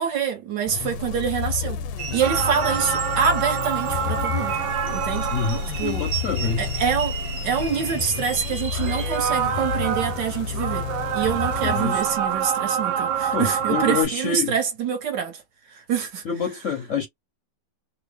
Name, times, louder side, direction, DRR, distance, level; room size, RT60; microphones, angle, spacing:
voice 1, 0.0-1.8 2.1-4.6 4.9-5.3 5.8-6.0 6.4-7.1 7.4-10.8 11.1-15.4 15.7-16.2, right 7 dB, 70° right, 1.5 m, -26 dB
sound 1, 0.7-12.6, left 7 dB, 90° left, 1.3 m, -30 dB
sound 2, 2.0-9.2, right 5 dB, 45° right, 0.8 m, -35 dB
sound 3, 2.2-6.3 6.7-6.8 8.7-14.0, right 8 dB, 85° right, 1.3 m, -27 dB
voice 2, 5.3-6.6 11.6-12.0 13.3-14.5 16.3-17.1, left 6 dB, 65° left, 0.7 m, -27 dB
3.3 x 2.0 x 3.3 m
omnidirectional pair, 2.0 m